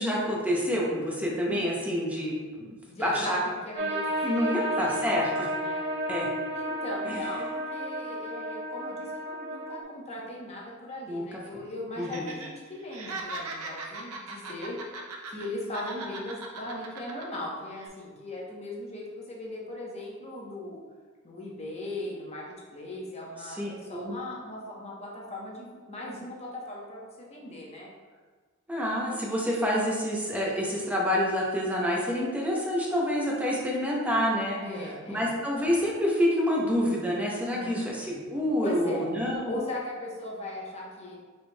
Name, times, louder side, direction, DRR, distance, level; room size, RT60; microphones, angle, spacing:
voice 1, 0.0-2.7 3.0-3.4 4.2-5.5 6.1-6.3 7.1-7.2 11.1-11.2 12.0-12.2 23.5-24.2 28.7-34.6 35.1-39.5, equal, 5° right, -4 dB, 0.7 m, -28 dB
voice 2, 2.9-4.1 4.3-4.6 4.8-5.2 5.6-5.9 6.5-14.8 15.3-20.8 21.2-22.4 22.7-27.9 34.6-35.2 37.6-37.9 38.6-39.1 39.5-41.2, left 1 dB, 30° left, -3 dB, 0.9 m, -38 dB
sound 1, 3.8-9.8, right 1 dB, 50° right, 0.7 m, -32 dB
Laughter, 12.0-12.5 12.8-15.5 15.7-17.4 17.7-17.9, right 3 dB, 90° right, 0.6 m, -39 dB
4.9 x 4.3 x 2.2 m, 1.4 s
head